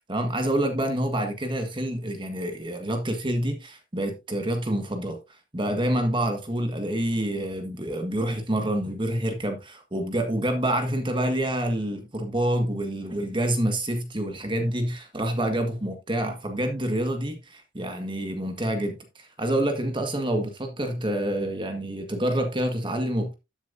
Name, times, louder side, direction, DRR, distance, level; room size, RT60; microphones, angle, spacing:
voice 1, 0.0-5.2 5.5-23.3, right 1 dB, 25° right, 1.6 m, -27 dB
13.0 x 7.4 x 2.6 m
head